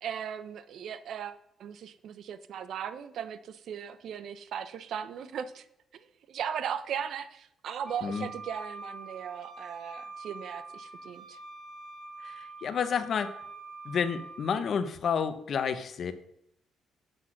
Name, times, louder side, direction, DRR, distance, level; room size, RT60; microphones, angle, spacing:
voice 1, 0.0-5.7 5.9-11.4, right 8 dB, 70° right, 13 dB, 0.6 m, -38 dB
Wind instrument woodwind instrument, 7.9-14.6, right 3 dB, 15° right, 4.3 m, -45 dB
voice 2, 12.2-13.3 13.8-16.1, left 6 dB, 55° left, 11 dB, 0.8 m, -30 dB
7.9 x 5.7 x 6.4 m, 0.74 s
cardioid pair, 90°, 0 cm